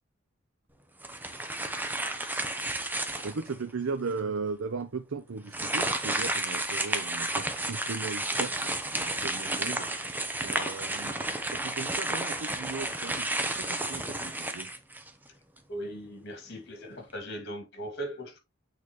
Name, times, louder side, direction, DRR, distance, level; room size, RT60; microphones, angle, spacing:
sound 1, 1.0-3.5 4.1-4.2 5.5-15.3, right 2 dB, 10° right, 0.8 m, -32 dB
voice 1, 3.2-14.7, right 4 dB, 85° right, 0.6 m, -37 dB
voice 2, 15.7-18.4, right 1 dB, 60° left, 2.4 m, -39 dB
8.5 x 4.1 x 3.1 m
head